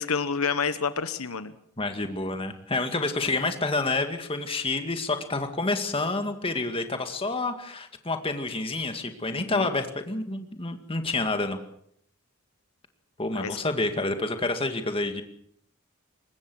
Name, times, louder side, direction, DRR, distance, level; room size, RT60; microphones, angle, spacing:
voice 1, 0.0-1.5 9.3-9.7 13.4-13.6, left 5 dB, 75° left, 12 dB, 1.2 m, -29 dB
voice 2, 1.8-11.6 13.2-15.2, left 2 dB, 25° left, 7 dB, 2.1 m, -28 dB
23.5 x 20.0 x 6.3 m, 0.66 s
head